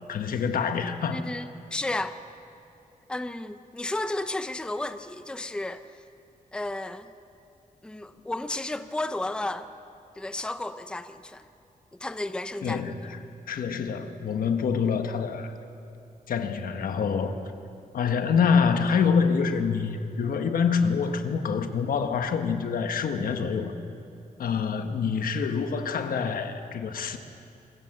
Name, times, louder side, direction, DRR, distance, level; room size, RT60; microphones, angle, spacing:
voice 1, 0.0-1.2 12.6-13.1 13.5-15.5 16.3-17.3 17.9-23.8 24.4-27.2, left 6 dB, 80° left, 7 dB, 1.3 m, -26 dB
voice 2, 1.1-2.2 3.1-5.8 6.5-7.1 7.8-9.7 10.2-11.4 11.9-12.8, left 2 dB, 5° left, 10 dB, 0.6 m, -33 dB
24.5 x 14.5 x 7.7 m, 2.6 s
wide cardioid pair, 145°, 14 cm